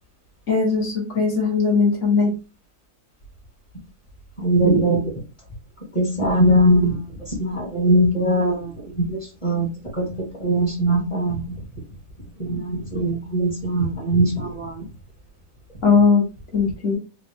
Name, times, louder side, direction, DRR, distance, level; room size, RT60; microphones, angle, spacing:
voice 1, 0.5-2.3 15.8-16.2 16.5-17.0, left 5 dB, 45° left, -1 dB, 1.7 m, -19 dB
voice 2, 4.4-5.1 5.9-9.7 9.9-10.1 10.4-11.6 12.4-14.8, right 1 dB, 20° left, -3 dB, 1.6 m, -21 dB
4.0 x 2.5 x 3.5 m, 0.32 s
omnidirectional pair, 1.8 m